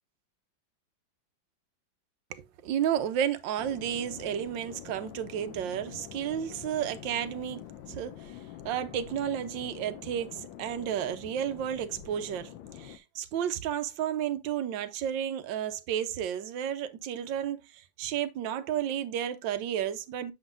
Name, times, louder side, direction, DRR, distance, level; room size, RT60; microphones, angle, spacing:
voice 1, 2.3-8.4 8.6-20.3, right 9 dB, 80° right, 1.4 m, -32 dB
sound 1, 3.6-13.0, left 11 dB, 80° left, 1.4 m, -46 dB
7.1 x 5.8 x 2.4 m
omnidirectional pair, 2.1 m